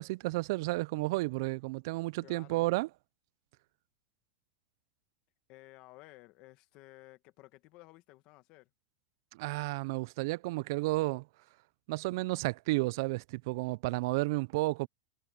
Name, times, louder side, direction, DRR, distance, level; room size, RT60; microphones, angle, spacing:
voice 1, 0.0-2.9 9.3-11.2 11.9-14.9, right 22 dB, 60° right, 0.3 m, -32 dB
voice 2, 2.2-2.7 5.5-8.7, left 19 dB, 45° left, 1.7 m, -55 dB
supercardioid pair, 150°, 2 cm